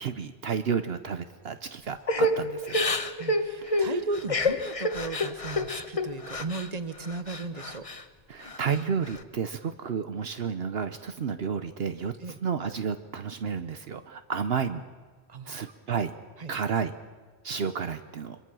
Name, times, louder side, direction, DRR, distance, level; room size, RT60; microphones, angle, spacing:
voice 1, 0.0-2.8 3.6-4.0 8.3-14.8 15.5-16.1 16.5-16.9 17.4-18.4, right 6 dB, 70° right, 10 dB, 1.1 m, -31 dB
Crying sobbing / Breathing, 2.1-6.7 7.1-8.0 8.4-9.2, left 1 dB, 35° left, 1.1 m, -29 dB
voice 2, 3.2-7.8 12.2-12.4 15.3-15.6 16.4-16.6, right 3 dB, 40° right, 11 dB, 1.2 m, -36 dB
24.0 x 22.5 x 6.2 m, 1.5 s
omnidirectional pair, 1.1 m